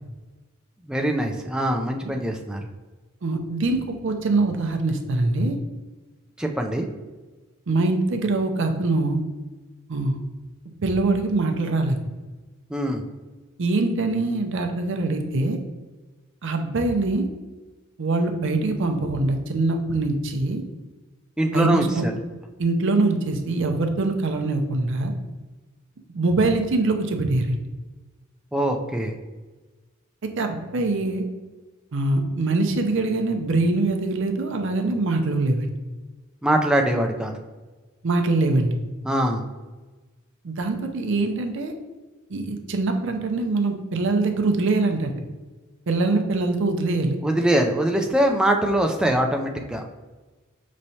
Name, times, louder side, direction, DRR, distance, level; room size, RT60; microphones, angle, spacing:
voice 1, 0.9-2.6 6.4-6.9 12.7-13.0 21.4-22.1 28.5-29.1 36.4-37.3 39.0-39.4 47.2-49.8, right 1 dB, 5° right, 2 dB, 0.3 m, -22 dB
voice 2, 3.2-5.6 7.7-9.2 9.9-10.2 10.8-12.0 13.6-15.6 16.4-17.3 18.0-20.6 21.5-22.0 22.6-25.1 26.1-27.6 30.2-31.3 31.9-35.7 38.0-38.7 40.4-41.7 42.3-45.1 45.9-47.2, right 2 dB, 60° right, 5 dB, 0.6 m, -23 dB
5.5 x 3.1 x 2.7 m, 1.3 s
head